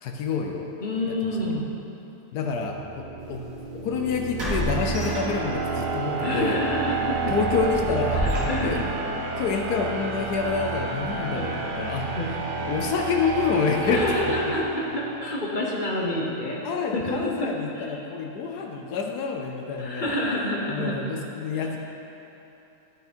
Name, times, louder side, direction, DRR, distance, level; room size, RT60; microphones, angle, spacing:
voice 1, 0.0-0.7 1.1-1.3 2.3-3.0 3.3-3.4 3.7-6.6 7.3-8.3 8.6-8.8 9.4-12.1 12.6-14.1 14.5-14.6 16.6-20.2 20.7-21.8, left 5 dB, 75° left, 2 dB, 1.2 m, -27 dB
voice 2, 0.8-1.6 6.2-7.4 8.1-8.9 11.3-11.5 12.2-12.3 13.8-16.6 16.9-18.0 19.8-21.1, left 1 dB, 40° left, -2 dB, 0.7 m, -28 dB
sound 1, 2.6-15.5, right 4 dB, 85° right, 0.4 m, -30 dB
sound 2, 3.3-3.4 4.4-5.8 6.2-6.4 6.9-9.0, left 1 dB, 55° right, 2.1 m, -31 dB
10.5 x 5.9 x 4.3 m, 3.0 s
omnidirectional pair, 1.7 m